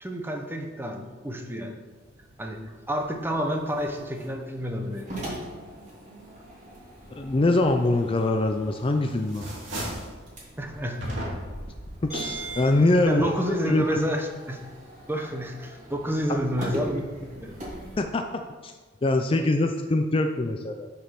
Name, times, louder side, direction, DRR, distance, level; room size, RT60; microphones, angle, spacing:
voice 1, 0.0-1.8 2.4-2.6 2.9-5.1 10.6-11.0 13.1-14.6 15.1-17.0 17.3-17.6, equal, 10° right, 3 dB, 0.9 m, -29 dB
sound 1, 1.9-18.0, right 1 dB, 40° right, 2.6 m, -41 dB
voice 2, 7.1-9.4 12.0-13.3 13.6-14.1 16.3-16.4 18.0-18.2 18.6-18.7 19.0-20.9, left 2 dB, 30° left, 5 dB, 0.4 m, -23 dB
sound 2, 8.4-8.9 9.2-10.2 11.0-11.7, right 1 dB, 75° right, 2.7 m, -34 dB
7.1 x 5.1 x 5.9 m, 1.4 s
head